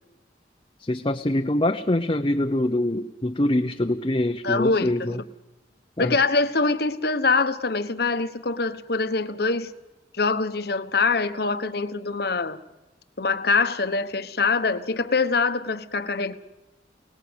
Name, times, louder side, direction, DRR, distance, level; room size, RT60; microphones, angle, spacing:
voice 1, 0.8-5.2 6.0-6.2, left 1 dB, 30° left, 0.8 m, -24 dB
voice 2, 4.4-5.2 6.0-9.7 10.1-12.6 13.2-16.3, left 4 dB, 60° left, 1.2 m, -24 dB
29.5 x 19.0 x 8.1 m
head